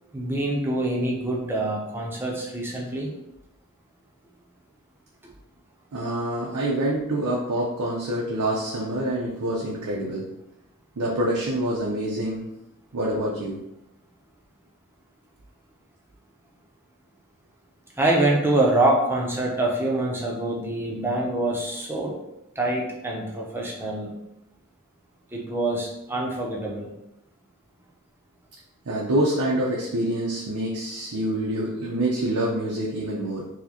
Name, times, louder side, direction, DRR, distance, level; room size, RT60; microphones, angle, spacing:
voice 1, 0.1-3.1 18.0-22.1 22.6-24.1 25.3-26.9, right 2 dB, 10° right, -2 dB, 0.6 m, -25 dB
voice 2, 5.9-10.3 11.0-12.5 12.9-13.6 28.9-33.4, right 1 dB, 85° right, -4 dB, 0.6 m, -26 dB
4.7 x 2.1 x 2.8 m, 0.87 s
head